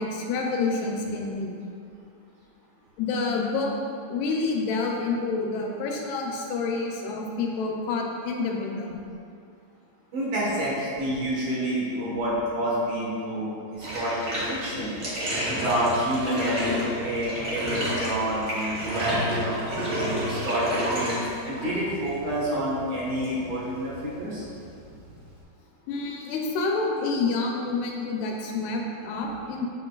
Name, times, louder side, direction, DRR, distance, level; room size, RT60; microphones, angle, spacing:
voice 1, 0.0-1.6 3.0-3.7 4.1-9.0 25.9-29.7, left 3 dB, 85° left, 0 dB, 2.8 m, -28 dB
voice 2, 10.1-14.9 15.5-19.6 20.2-24.4, equal, 60° right, -7 dB, 2.3 m, -28 dB
Bathtub (filling or washing), 13.8-25.4, equal, 80° right, 0.8 m, -31 dB
8.6 x 7.6 x 2.3 m, 2.5 s
omnidirectional pair, 4.6 m